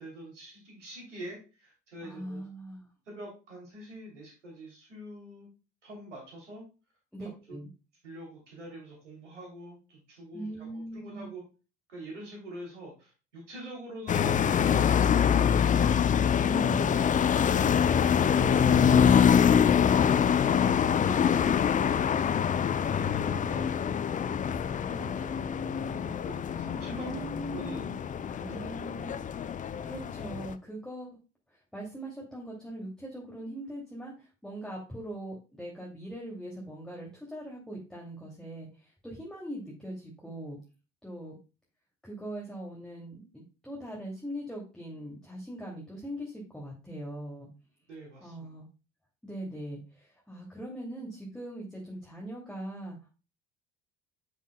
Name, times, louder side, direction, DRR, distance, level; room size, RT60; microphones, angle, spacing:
voice 1, 0.0-2.4 3.1-5.5 5.8-6.6 7.2-7.6 8.0-11.4 11.9-16.0 16.9-17.2 17.4-17.7 18.1-22.4 22.7-24.0 24.4-27.2 27.5-27.8 28.8-28.9 47.9-48.5, right 1 dB, 85° right, -1 dB, 3.1 m, -45 dB
voice 2, 2.0-2.9 7.1-7.7 10.3-11.3 16.4-17.1 26.9-29.2 29.8-31.2 31.7-40.6 41.0-41.4 42.0-47.5 48.2-48.7 49.2-53.0, right 1 dB, ahead, -3 dB, 2.6 m, -41 dB
sound 1, 14.1-30.5, left 8 dB, 20° left, 0.5 m, -25 dB
8.0 x 7.3 x 2.2 m, 0.31 s
figure-of-eight pair, 65°, 35 cm